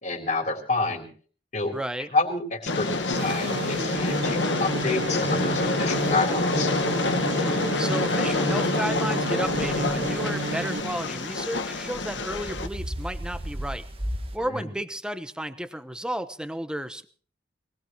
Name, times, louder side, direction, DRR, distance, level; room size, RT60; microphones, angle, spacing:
voice 1, 0.0-1.1 1.5-1.8 2.1-6.7 14.4-14.7, left 3 dB, 40° left, 3 dB, 3.7 m, -28 dB
voice 2, 1.7-2.1 7.3-13.9 14.3-17.1, right 1 dB, 5° right, 11 dB, 0.9 m, -33 dB
Train, 2.7-12.7, left 2 dB, 85° left, 1.6 m, -27 dB
sound 1, 2.7-14.4, equal, 30° right, 1.5 m, -40 dB
sound 2, 3.1-10.8, right 3 dB, 65° right, 0.7 m, -32 dB
22.5 x 19.5 x 3.1 m, 0.43 s
head